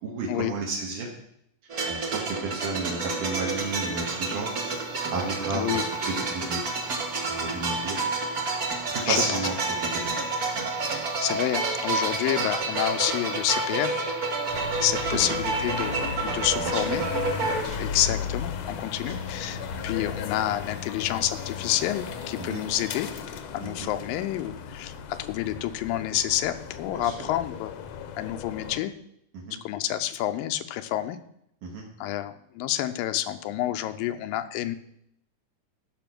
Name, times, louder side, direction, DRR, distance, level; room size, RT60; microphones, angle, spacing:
voice 1, 0.0-1.1 1.9-4.5 5.1-6.6 7.3-8.1 8.9-9.6 9.9-10.2 15.1-15.4 16.3-17.0 17.6-17.9 19.0-19.1 22.4-22.6 23.6-23.9 26.9-27.3 29.3-29.6 31.6-31.8, right 3 dB, 70° right, -1 dB, 3.0 m, -32 dB
sound 1, 1.7-17.6, right 3 dB, 90° right, 0.8 m, -29 dB
sound 2, 3.5-23.2, right 2 dB, 50° right, 2.0 m, -47 dB
voice 2, 5.5-5.8 9.1-9.2 10.8-14.0 14.8-17.0 17.8-23.1 23.5-27.7 28.2-28.9 29.6-31.2 32.0-34.8, left 13 dB, 85° left, 8 dB, 2.4 m, -29 dB
sound 3, 14.5-28.8, left 7 dB, 70° left, 1.7 m, -36 dB
14.0 x 6.0 x 6.0 m, 0.74 s
omnidirectional pair, 4.0 m